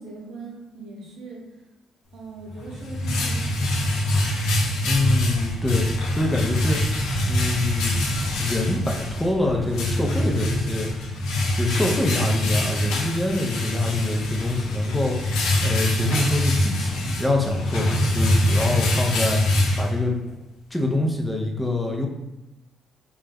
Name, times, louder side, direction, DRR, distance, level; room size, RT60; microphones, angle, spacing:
voice 1, 0.0-1.5 2.1-4.1, right 2 dB, 75° right, -3 dB, 0.7 m, -40 dB
sound 1, 2.5-20.3, left 1 dB, 85° left, 0.4 m, -24 dB
voice 2, 4.8-6.8 7.2-10.9 11.6-15.3 15.6-19.4 19.8-20.2 20.7-22.1, left 2 dB, 10° left, 0 dB, 0.4 m, -25 dB
sound 2, 4.9-11.1, left 1 dB, 25° left, 0.8 m, -38 dB
2.2 x 2.0 x 3.3 m, 0.96 s
cardioid pair, 90°, 0 cm